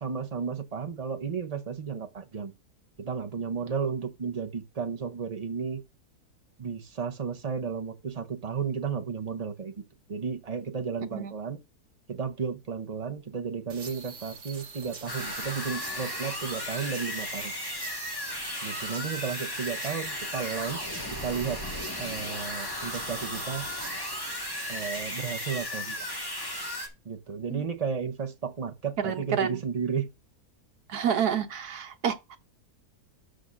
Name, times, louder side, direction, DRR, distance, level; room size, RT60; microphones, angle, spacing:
voice 1, 0.0-2.5 3.0-5.8 6.6-9.8 10.1-11.6 12.1-17.5 18.6-21.6 22.0-23.7 24.7-26.1 27.0-30.1, right 6 dB, 35° right, 0.7 m, -33 dB
sound 1, 13.7-25.6, right 5 dB, 55° right, 1.7 m, -45 dB
sound 2, 15.1-26.9, left 1 dB, 15° left, 1.6 m, -35 dB
voice 2, 29.0-29.6 30.9-32.4, right 8 dB, 80° right, 1.4 m, -29 dB
13.0 x 6.2 x 2.6 m
omnidirectional pair, 1.6 m